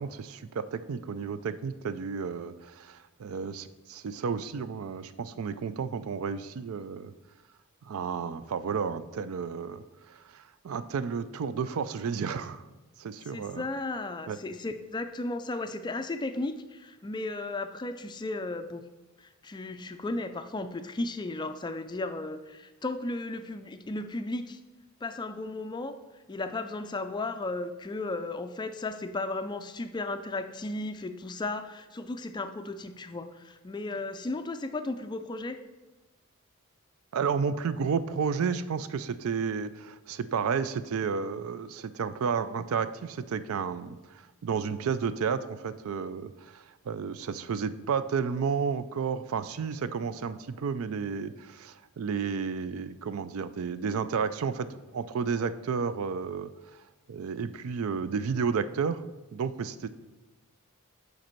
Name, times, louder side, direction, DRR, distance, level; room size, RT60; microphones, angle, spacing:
voice 1, 0.0-7.1 7.8-12.6 13.0-13.7 14.3-14.4 37.1-56.5 57.1-59.0 59.3-59.9, right 6 dB, 65° right, 13 dB, 0.4 m, -32 dB
voice 2, 13.3-18.8 19.2-24.6 25.0-26.0 26.3-35.6, left 2 dB, 20° left, 9 dB, 0.3 m, -35 dB
7.5 x 5.3 x 4.4 m, 1.1 s
head